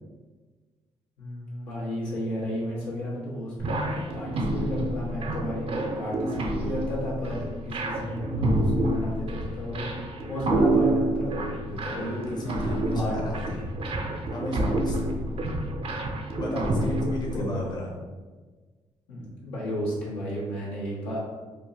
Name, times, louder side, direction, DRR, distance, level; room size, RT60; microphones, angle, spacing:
voice 1, 1.2-13.1 13.6-13.7 17.3-17.8 19.1-21.2, equal, 85° left, -7 dB, 0.9 m, -34 dB
sound 1, 3.6-17.4, right 1 dB, 45° right, 0.5 m, -28 dB
voice 2, 11.9-13.7 14.3-15.0 16.4-17.9, left 1 dB, 30° left, -2 dB, 0.7 m, -34 dB
3.4 x 2.0 x 2.4 m, 1.4 s
hypercardioid pair, 50°, 14 cm